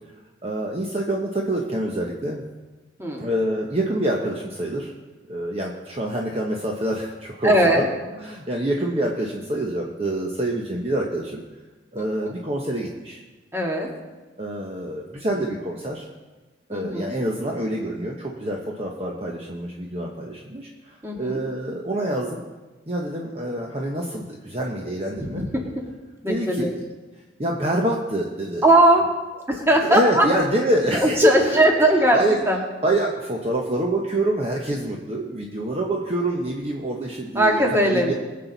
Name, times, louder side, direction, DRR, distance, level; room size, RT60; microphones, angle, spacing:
voice 1, 0.4-2.4 3.2-4.9 5.3-7.8 8.1-11.4 11.9-13.2 14.4-16.1 16.7-22.4 22.9-25.4 26.3-26.8 27.4-28.6 29.5-31.7 32.1-32.4 32.8-38.1, right 1 dB, 30° right, 0 dB, 1.0 m, -26 dB
voice 2, 7.4-7.9 12.0-12.3 13.5-13.9 16.7-17.2 21.0-21.4 25.2-25.8 26.2-26.7 28.6-29.1 29.5-30.3 31.0-32.2 32.5-32.6 37.4-38.1, right 1 dB, 15° right, 0 dB, 1.8 m, -19 dB
22.0 x 7.7 x 4.0 m, 1.2 s
head